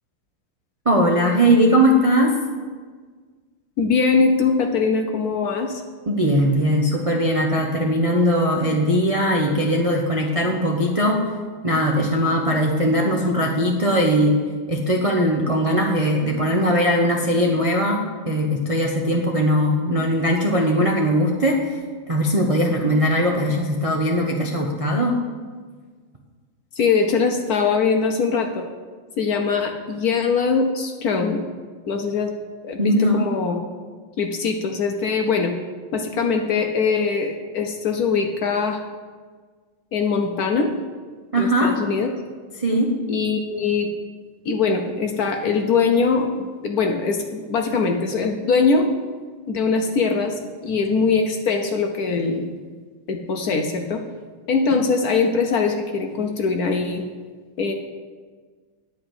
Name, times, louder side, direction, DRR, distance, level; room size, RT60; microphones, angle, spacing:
voice 1, 0.8-2.3 6.1-11.2 11.6-14.3 14.7-21.8 22.1-25.1 32.8-33.3 41.3-41.7 42.6-42.9, equal, 40° right, -1 dB, 0.4 m, -20 dB
voice 2, 3.8-5.8 26.8-28.6 29.2-31.4 31.9-32.3 32.6-33.6 34.2-35.5 35.9-38.8 39.9-40.7 41.3-42.1 43.1-43.9 44.4-48.9 49.5-50.3 50.6-52.4 53.1-54.0 54.5-57.0 57.6-57.7, left 5 dB, 60° left, 3 dB, 1.1 m, -22 dB
10.5 x 4.9 x 7.8 m, 1.5 s
omnidirectional pair, 2.2 m